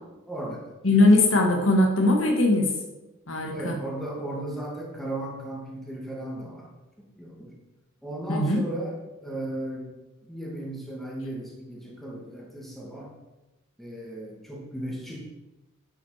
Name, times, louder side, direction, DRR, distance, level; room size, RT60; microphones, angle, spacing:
voice 1, 0.3-0.6 3.5-6.7 7.0-7.6 8.0-9.9 10.2-13.2 13.8-15.2, right 1 dB, ahead, -3 dB, 2.1 m, -36 dB
voice 2, 0.8-2.7 3.3-3.8 8.3-8.6, left 2 dB, 65° left, 2 dB, 1.8 m, -20 dB
10.5 x 6.3 x 5.8 m, 1.1 s
head